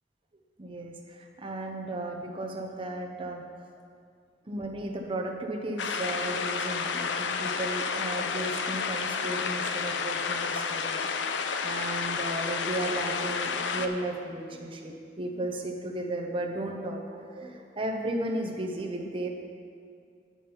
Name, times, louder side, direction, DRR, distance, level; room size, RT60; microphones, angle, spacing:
voice 1, 0.6-3.4 4.5-19.3, right 1 dB, 30° right, 2 dB, 0.8 m, -35 dB
sound 1, 5.8-13.9, left 5 dB, 80° left, 0.5 m, -31 dB
8.8 x 6.1 x 5.5 m, 2.3 s
head